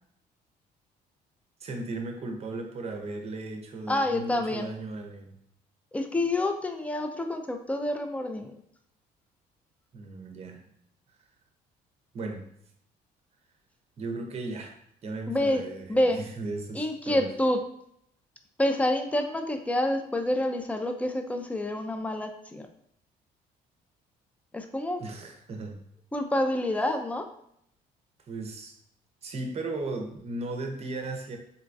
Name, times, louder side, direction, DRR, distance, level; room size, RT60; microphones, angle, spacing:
voice 1, 1.6-5.3 9.9-10.6 12.1-12.5 14.0-14.8 15.0-17.3 25.0-25.8 28.3-28.7 29.2-31.4, right 2 dB, 40° right, 3 dB, 0.6 m, -36 dB
voice 2, 3.9-4.7 5.9-8.5 15.3-15.6 15.9-16.2 16.7-17.6 18.6-22.7 24.5-25.0 26.1-27.3, left 1 dB, 10° left, 6 dB, 0.3 m, -28 dB
3.9 x 2.3 x 2.5 m, 0.70 s
cardioid pair, 110°, 17 cm